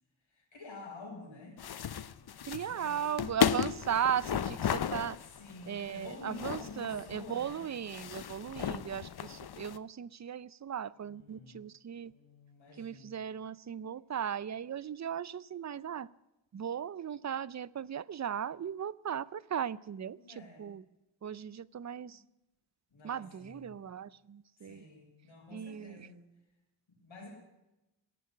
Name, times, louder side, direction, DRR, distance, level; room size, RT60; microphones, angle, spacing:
voice 1, 0.3-1.6 2.3-3.1 3.9-4.1 5.2-7.7 11.0-11.6 12.0-13.2 20.1-20.7 22.0-22.3 22.9-23.8 24.6-26.2 26.9-27.3, left 3 dB, 80° left, -1 dB, 6.2 m, -50 dB
sound 1, 1.6-9.8, left 8 dB, 55° left, 0.7 m, -35 dB
voice 2, 2.5-5.2 5.7-12.1 12.8-16.1 16.5-20.2 20.6-20.8 21.2-22.2 23.0-24.8 25.5-26.0, right 8 dB, 40° right, 20 dB, 0.5 m, -37 dB
17.0 x 7.3 x 9.7 m, 0.93 s
wide cardioid pair, 80°, 46 cm